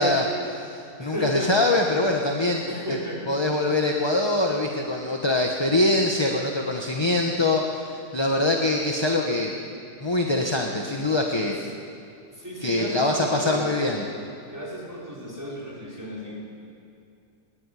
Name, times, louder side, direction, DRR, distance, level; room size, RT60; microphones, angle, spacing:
voice 1, 0.0-2.6 2.9-3.0 3.3-9.5 10.0-11.6 12.6-14.0, left 2 dB, 15° left, 1 dB, 1.3 m, -23 dB
voice 2, 1.0-1.7 2.7-3.2 12.3-13.8 14.5-16.4, equal, 10° right, -5 dB, 5.6 m, -33 dB
20.5 x 20.0 x 9.9 m, 2.5 s
omnidirectional pair, 1.7 m